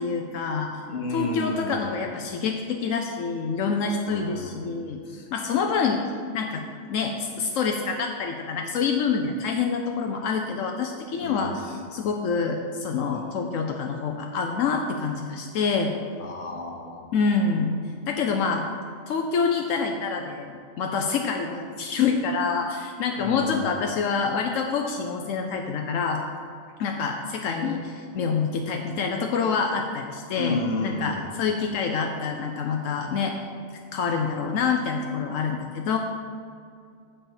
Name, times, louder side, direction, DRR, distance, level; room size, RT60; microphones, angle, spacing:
voice 1, 0.0-0.7 1.1-6.0 6.3-6.6 6.9-15.9 17.1-17.8 18.1-18.6 19.1-26.2 26.8-33.3 33.9-36.0, left 5 dB, 85° left, 3 dB, 1.0 m, -26 dB
voice 2, 0.9-1.9 4.1-4.7 11.2-11.8 16.2-17.1 23.2-23.8 30.3-31.3, left 2 dB, 65° left, 2 dB, 1.4 m, -31 dB
8.8 x 4.3 x 7.3 m, 2.4 s
omnidirectional pair, 1.3 m